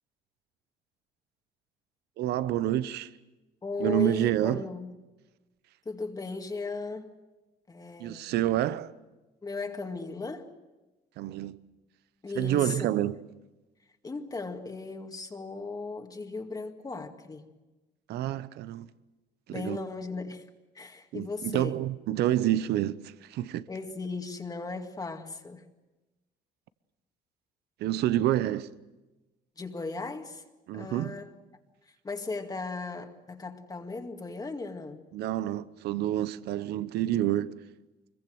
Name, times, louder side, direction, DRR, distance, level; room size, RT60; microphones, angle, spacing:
voice 1, 2.2-3.1 3.8-4.6 8.0-8.9 11.2-11.6 12.4-13.2 18.1-18.9 19.5-19.8 21.1-23.7 27.8-28.7 30.7-31.2 35.1-37.5, right 13 dB, 75° right, 0.8 m, -28 dB
voice 2, 3.6-4.9 5.9-7.1 7.7-8.3 9.4-10.5 12.2-12.9 14.0-17.4 19.5-20.5 20.7-21.7 23.7-25.6 29.6-30.4 30.7-31.4 32.0-35.0, left 3 dB, 20° left, 2.1 m, -37 dB
24.5 x 22.5 x 7.9 m
cardioid pair, 110°, 17 cm